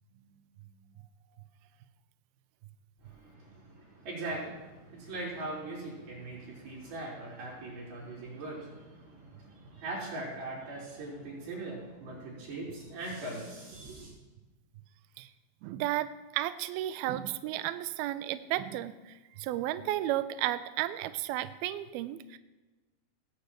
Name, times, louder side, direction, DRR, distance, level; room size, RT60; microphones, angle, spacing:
voice 1, 3.0-14.1, right 2 dB, 60° right, -5 dB, 6.1 m, -41 dB
voice 2, 15.6-22.4, right 14 dB, 85° right, 12 dB, 2.2 m, -33 dB
18.0 x 17.0 x 3.1 m, 1.2 s
omnidirectional pair, 5.1 m